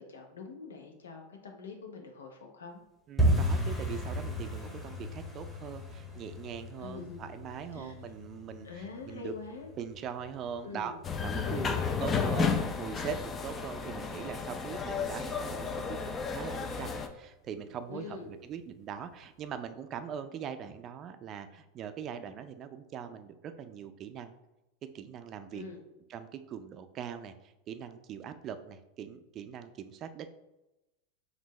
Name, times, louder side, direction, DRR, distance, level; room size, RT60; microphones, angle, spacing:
voice 1, 0.0-2.8 6.8-7.3 7.7-8.1 8.6-9.7 10.6-11.0 11.4-11.9 17.9-18.4 25.5-25.8, left 4 dB, 85° left, 3 dB, 0.8 m, -44 dB
voice 2, 3.1-9.3 9.8-10.9 11.2-11.7 12.0-24.3 24.9-25.6 26.1-27.3 27.7-30.3, right 8 dB, 40° right, 10 dB, 0.4 m, -41 dB
sound 1, 3.2-13.9 14.1-14.9 15.1-15.4 15.7-16.1 16.3-16.5 17.0-17.5 17.8-17.9 18.4-18.5, equal, 10° left, 1.1 m, -35 dB
sound 2, 11.0-17.1, left 5 dB, 25° left, 0.5 m, -32 dB
5.2 x 2.6 x 3.1 m, 0.95 s
hypercardioid pair, 105°, 0 cm